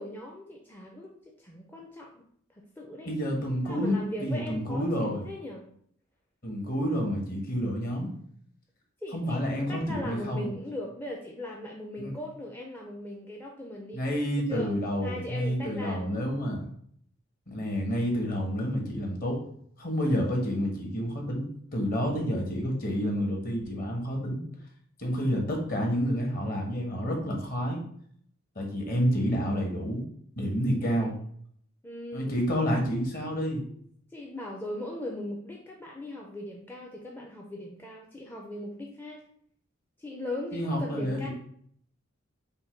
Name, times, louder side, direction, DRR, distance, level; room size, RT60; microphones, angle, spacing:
voice 1, 0.0-2.2 2.5-3.1 3.6-5.7 9.0-14.0 14.5-14.7 15.0-16.0 30.8-31.1 31.8-32.4 33.7-33.8 34.1-39.2 40.0-41.3, left 1 dB, 10° left, -1 dB, 0.5 m, -39 dB
voice 2, 3.0-5.3 6.4-8.1 9.1-10.5 12.0-12.1 13.9-16.7 17.5-19.4 19.8-21.4 21.7-24.4 25.0-27.8 28.5-30.0 30.4-31.1 32.1-33.6 40.5-41.3, equal, 45° left, 0 dB, 1.2 m, -29 dB
5.3 x 2.2 x 4.4 m, 0.63 s
head